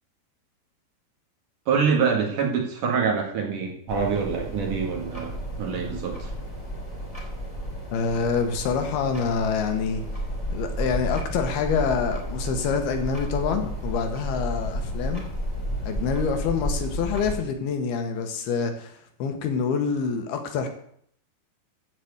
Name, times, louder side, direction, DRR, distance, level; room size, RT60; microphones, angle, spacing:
voice 1, 1.7-5.3 5.6-6.3, right 6 dB, 55° right, 0 dB, 3.1 m, -25 dB
sound 1, 3.9-17.4, equal, 10° left, 2.4 m, -32 dB
voice 2, 7.9-10.0 10.5-15.3 15.9-20.7, left 5 dB, 75° left, 5 dB, 2.9 m, -26 dB
14.5 x 4.9 x 8.0 m, 0.66 s
omnidirectional pair, 4.8 m